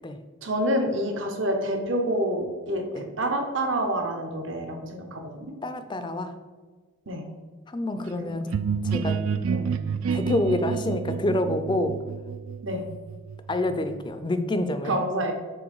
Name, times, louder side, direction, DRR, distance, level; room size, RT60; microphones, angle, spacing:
voice 1, 0.4-5.4 7.1-7.2 8.2-8.3 9.5-9.7 12.6-12.8 14.8-15.3, right 1 dB, 65° right, 3 dB, 0.9 m, -27 dB
voice 2, 5.6-6.3 7.7-8.5 8.8-9.2 10.1-11.9 13.5-14.9, left 1 dB, 25° left, 9 dB, 0.4 m, -27 dB
sound 1, 8.5-14.1, right 6 dB, 80° right, 0.3 m, -29 dB
6.3 x 3.8 x 4.7 m, 1.4 s
head